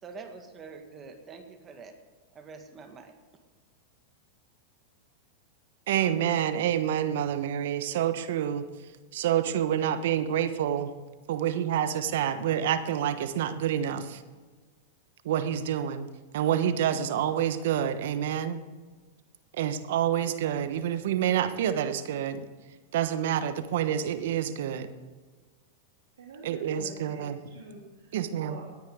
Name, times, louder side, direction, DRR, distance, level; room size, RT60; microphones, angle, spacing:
voice 1, 0.0-2.0 2.3-3.1, right 4 dB, 30° right, 6 dB, 1.8 m, -45 dB
voice 2, 5.9-8.6 9.1-10.9 11.3-14.2 15.2-16.1 16.3-18.6 19.6-22.5 22.9-24.9 26.4-27.4 28.1-28.6, right 10 dB, 70° right, 10 dB, 1.1 m, -28 dB
voice 3, 26.2-28.6, right 3 dB, 90° right, -4 dB, 2.8 m, -46 dB
18.0 x 10.0 x 3.7 m, 1.4 s
hypercardioid pair, 110°, 0 cm